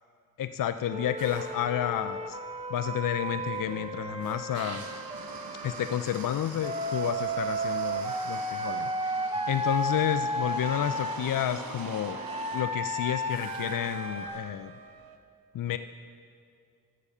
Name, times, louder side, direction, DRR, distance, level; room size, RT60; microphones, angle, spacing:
voice 1, 0.4-2.4 2.7-4.8 5.6-12.2 12.5-14.7 15.5-15.8, left 10 dB, 65° left, 11 dB, 0.5 m, -31 dB
Wind instrument woodwind instrument, 0.9-6.0 6.6-11.3 12.1-14.3, right 1 dB, 15° right, 0.9 m, -33 dB
sound 1, 1.2-15.2, right 5 dB, 80° right, 0.9 m, -44 dB
12.0 x 7.5 x 6.6 m, 2.3 s
cardioid pair, 45°, 35 cm